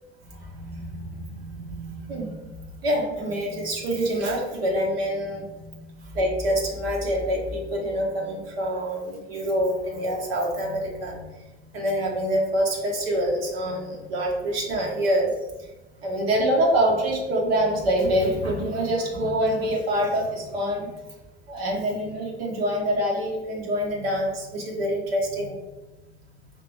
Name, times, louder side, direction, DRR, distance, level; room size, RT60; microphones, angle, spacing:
voice 1, 0.2-15.7 16.0-20.9 21.5-25.6, equal, 75° right, -1 dB, 1.0 m, -26 dB
4.7 x 3.3 x 3.3 m, 1.1 s
figure-of-eight pair, 55°, 30 cm